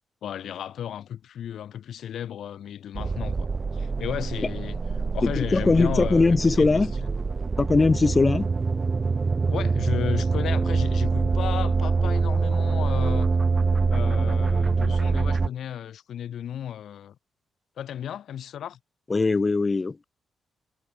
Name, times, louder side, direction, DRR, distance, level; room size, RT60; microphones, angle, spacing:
voice 1, 0.2-4.8 5.1-7.1 9.5-13.3 13.9-17.2 17.8-18.8, left 10 dB, 70° left, 5.4 m, -34 dB
sound 1, 2.9-15.5, right 4 dB, 25° right, 3.5 m, -25 dB
voice 2, 5.2-6.9 7.6-8.5 19.1-20.1, left 3 dB, 20° left, 2.1 m, -21 dB
cardioid pair, 145°, 0 cm